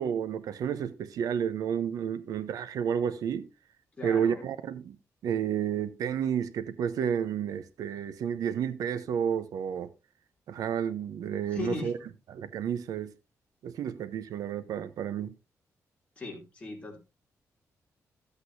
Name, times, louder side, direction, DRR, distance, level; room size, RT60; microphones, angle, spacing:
voice 1, 0.0-3.5 4.0-5.0 5.2-9.9 10.5-11.9 12.3-13.1 13.6-15.3, right 8 dB, 85° right, 0.8 m, -31 dB
voice 2, 4.0-4.5 11.5-11.9 16.2-17.0, left 3 dB, 20° left, 2.9 m, -38 dB
13.5 x 8.1 x 2.7 m
wide cardioid pair, 165°, 6 cm